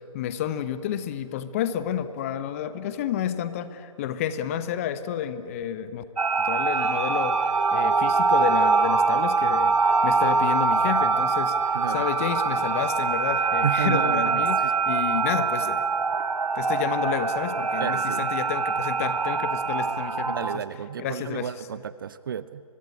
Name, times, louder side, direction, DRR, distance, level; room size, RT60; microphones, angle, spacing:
voice 1, 0.0-6.0 6.4-15.8 16.5-20.6 21.0-21.5, left 10 dB, 25° left, 13 dB, 0.9 m, -30 dB
sound 1, 6.2-20.6, right 4 dB, 80° right, 1.1 m, -24 dB
Wind instrument woodwind instrument, 6.7-13.0, right 3 dB, 60° right, 4.7 m, -32 dB
voice 2, 11.7-12.1 13.6-14.7 17.8-18.3 20.3-22.6, right 8 dB, 35° right, 17 dB, 0.6 m, -32 dB
23.5 x 21.0 x 9.7 m, 2.7 s
figure-of-eight pair, 145°, 19 cm